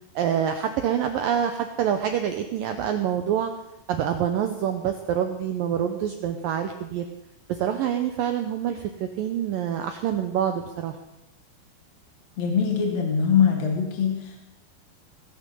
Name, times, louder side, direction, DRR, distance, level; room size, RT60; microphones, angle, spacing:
voice 1, 0.2-3.5 3.9-7.1 7.5-11.0, right 9 dB, 80° right, 6 dB, 2.0 m, -26 dB
voice 2, 12.4-14.4, left 7 dB, 45° left, 1 dB, 2.5 m, -22 dB
19.5 x 9.1 x 7.0 m, 0.92 s
omnidirectional pair, 5.2 m